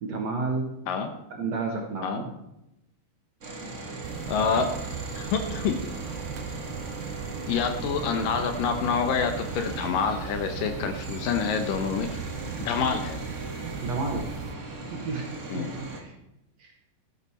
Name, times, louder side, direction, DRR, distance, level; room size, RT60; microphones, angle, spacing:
voice 1, 0.0-0.7 1.3-2.3 13.8-14.3 14.9-16.1 16.6-16.7, right 3 dB, 60° right, 0 dB, 2.0 m, -31 dB
sound 1, 3.4-16.0, right 2 dB, 40° right, 1.0 m, -38 dB
sound 2, 4.0-14.6, right 8 dB, 80° right, 2.4 m, -38 dB
voice 2, 4.3-4.7 5.2-5.8 7.5-12.2 12.6-13.2 15.5-15.7, left 6 dB, 75° left, 7 dB, 2.4 m, -27 dB
12.5 x 10.5 x 4.3 m, 0.88 s
omnidirectional pair, 4.4 m